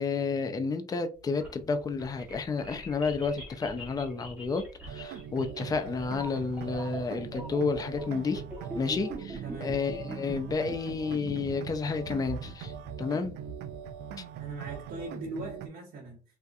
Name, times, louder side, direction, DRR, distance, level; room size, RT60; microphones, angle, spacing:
voice 1, 0.0-8.4 8.7-12.7 13.0-13.3, left 4 dB, 20° left, 0.4 m, -31 dB
Noise Design, 1.2-15.3, right 1 dB, 10° right, 1.1 m, -43 dB
sound 1, 4.9-15.7, right 8 dB, 80° right, 0.4 m, -42 dB
voice 2, 9.4-9.8 14.4-16.2, right 2 dB, 60° right, 0.9 m, -40 dB
3.4 x 2.8 x 2.4 m
cardioid pair, 110°, 17 cm